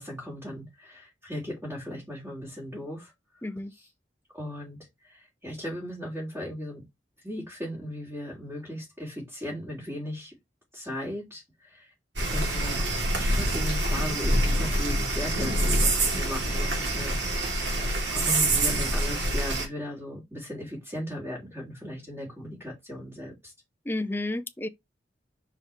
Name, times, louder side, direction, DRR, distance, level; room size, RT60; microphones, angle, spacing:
voice 1, 0.0-3.1 3.7-3.9 4.3-4.8 5.0-6.8 7.2-10.3 10.7-11.9 12.3-12.8 13.1-23.5, left 1 dB, 15° right, 3.0 m, -37 dB
voice 2, 3.4-3.7 23.9-24.7, left 2 dB, 10° left, 0.5 m, -31 dB
sound 1, 12.2-19.7, right 1 dB, 85° right, 2.6 m, -26 dB
5.0 x 5.0 x 4.2 m
head